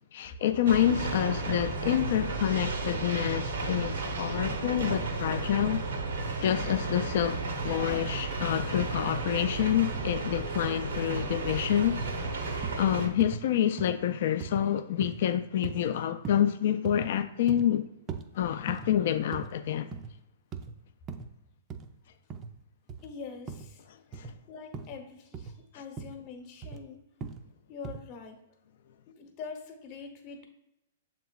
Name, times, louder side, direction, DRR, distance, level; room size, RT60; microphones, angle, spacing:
voice 1, 0.0-5.8 6.4-12.0 12.8-17.8 18.3-19.9 24.1-24.3, left 10 dB, 60° left, 0.3 m, -28 dB
sound 1, 0.7-13.1, right 3 dB, 80° right, 0.7 m, -33 dB
sound 2, 12.6-12.8 13.2-13.4 13.8-14.0 14.4-14.6 15.0-15.2 15.6-15.8 16.2-16.5 16.8-17.1 17.5-17.7 18.1-18.2 18.7-18.9 19.3-19.5 19.8-20.1 20.5-20.7 21.1-21.3 21.7-21.9 22.3-22.5 22.9-23.1 23.5-23.7 24.1-24.4 24.7-25.0 25.3-25.6 26.0-26.2 26.6-26.8 27.2-27.4 27.8-28.0, right 6 dB, 30° right, 0.4 m, -39 dB
voice 2, 23.0-23.9 24.5-27.0 27.7-28.4 29.1-30.5, left 5 dB, 40° left, 0.8 m, -44 dB
6.9 x 2.9 x 2.3 m
hypercardioid pair, 125°, 0 cm